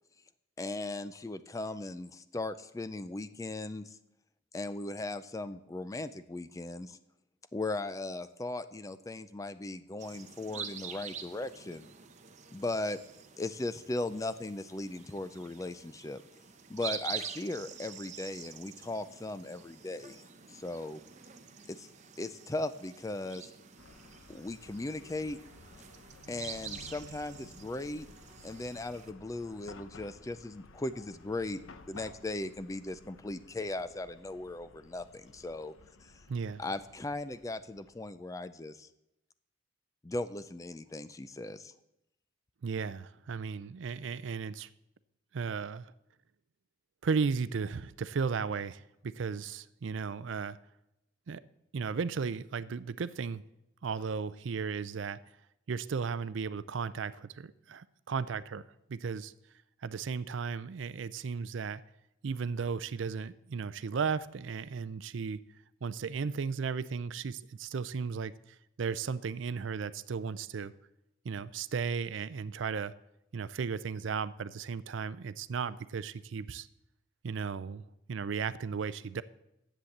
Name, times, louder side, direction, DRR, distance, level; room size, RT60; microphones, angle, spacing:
voice 1, 0.6-4.0 4.5-7.0 7.5-11.9 12.5-13.0 13.4-16.2 16.7-20.2 20.5-21.0 21.7-21.9 22.2-23.5 24.3-25.4 26.3-28.1 28.4-31.6 31.9-35.7 36.0-36.2 36.6-38.9 40.0-41.7, left 2 dB, 15° left, 13 dB, 0.4 m, -38 dB
sound 1, 10.0-29.1, right 7 dB, 35° right, 0.8 m, -47 dB
Chatter / Car passing by / Traffic noise roadway noise, 23.8-38.1, left 3 dB, 80° left, 0.8 m, -55 dB
voice 2, 36.3-36.6 42.6-44.7 45.3-45.9 47.0-50.6 51.3-51.4 51.7-53.4 53.8-55.2 55.7-58.6 58.9-59.3 59.8-61.8 62.2-65.4 65.8-70.7 71.2-72.9 73.3-76.7 77.2-79.2, right 5 dB, 65° right, 17 dB, 0.4 m, -35 dB
10.5 x 8.1 x 7.2 m, 0.87 s
head